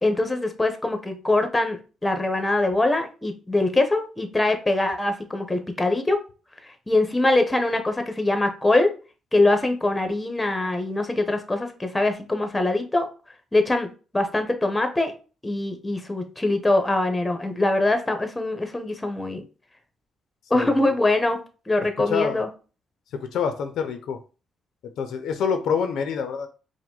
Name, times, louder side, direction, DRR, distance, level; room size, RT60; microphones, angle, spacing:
voice 1, 0.0-6.2 6.6-8.9 9.3-13.1 13.5-13.9 14.1-15.1 15.4-19.4 20.5-21.4 21.7-22.5, left 2 dB, 15° left, 7 dB, 0.9 m, -23 dB
voice 2, 20.5-21.0 22.1-22.4 23.1-24.2 25.0-26.5, left 6 dB, 75° left, 7 dB, 0.6 m, -27 dB
4.7 x 2.1 x 3.8 m, 0.34 s
cardioid pair, 90°, 0 cm